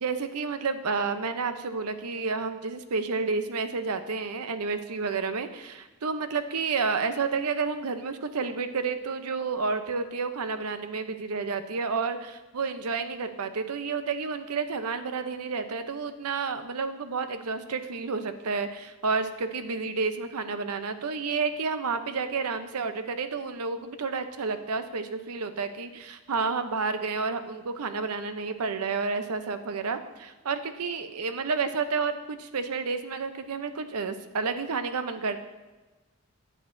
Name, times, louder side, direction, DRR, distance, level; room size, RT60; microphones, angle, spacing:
voice 1, 0.0-35.4, right 4 dB, 90° right, 9 dB, 0.7 m, -30 dB
12.5 x 8.4 x 2.6 m, 1.2 s
head